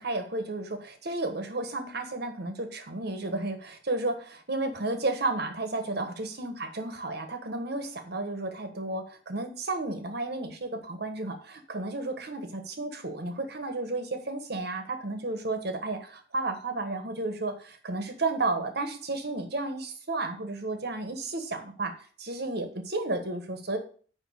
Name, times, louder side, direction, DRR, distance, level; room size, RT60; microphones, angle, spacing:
voice 1, 0.0-21.9 22.2-23.8, right 2 dB, 60° right, 6 dB, 1.3 m, -32 dB
9.5 x 3.2 x 6.4 m, 0.43 s
head